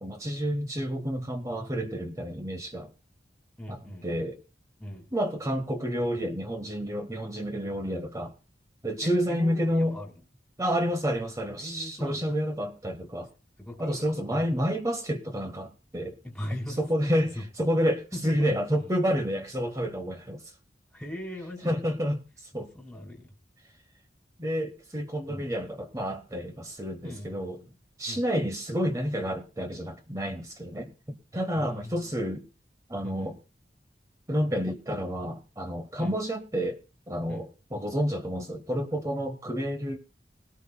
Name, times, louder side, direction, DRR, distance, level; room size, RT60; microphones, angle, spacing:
voice 1, 0.0-2.9 3.7-3.8 4.0-4.4 5.1-8.3 8.8-9.9 10.6-13.3 13.8-16.2 16.8-20.4 21.6-22.2 22.5-22.7 24.4-27.6 28.0-30.9 31.3-32.4 32.9-33.4 34.3-36.8 37.1-40.0, equal, 20° right, 8 dB, 1.0 m, -29 dB
voice 2, 3.6-4.3 4.8-5.1 9.0-10.1 11.6-12.3 13.6-14.5 16.2-16.8 17.3-17.4 18.1-18.9 20.9-21.8 22.7-23.3 25.3-25.5 27.0-27.7 28.1-28.2 31.5-32.2 33.0-33.4 36.0-36.2 37.3-37.4, left 1 dB, 5° left, 1 dB, 2.1 m, -40 dB
19.5 x 13.5 x 2.2 m, 0.32 s
head